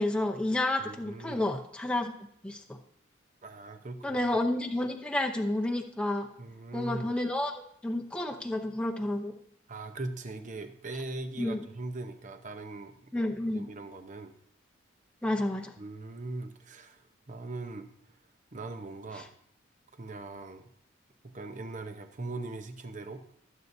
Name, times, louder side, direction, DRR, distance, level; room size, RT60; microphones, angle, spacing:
voice 1, 0.0-2.1 2.4-2.8 4.0-6.3 6.7-7.5 7.8-9.3 11.4-11.7 13.1-13.7 15.2-15.7 19.1-19.2, left 1 dB, 5° left, 1 dB, 0.7 m, -30 dB
voice 2, 0.8-1.4 3.4-4.2 6.4-7.1 9.7-13.1 13.5-14.3 15.8-17.0 17.3-17.9 18.5-19.3 19.9-20.7 21.2-23.3, right 2 dB, 40° right, 7 dB, 0.8 m, -40 dB
18.0 x 8.1 x 2.7 m, 0.68 s
head